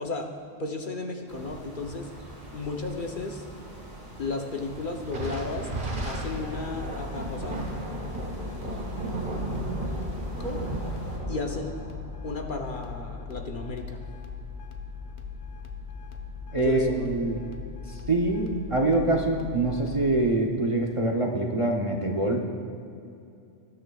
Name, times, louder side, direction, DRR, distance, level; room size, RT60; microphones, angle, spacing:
voice 1, 0.0-2.1 2.5-3.4 4.2-5.7 6.0-7.7 10.4-10.6 11.3-11.7 12.2-14.0 16.5-17.1, left 3 dB, 50° left, 2 dB, 0.9 m, -34 dB
sound 1, 1.3-11.2, equal, 70° right, 3.0 m, -45 dB
Thunder, 5.0-13.8, right 2 dB, 50° right, 1.5 m, -34 dB
sound 2, 5.9-20.2, left 5 dB, 75° left, 1.3 m, -40 dB
voice 2, 16.5-17.4 17.9-22.4, right 2 dB, 30° right, 0 dB, 0.8 m, -25 dB
19.5 x 11.0 x 2.3 m, 2.6 s
omnidirectional pair, 1.2 m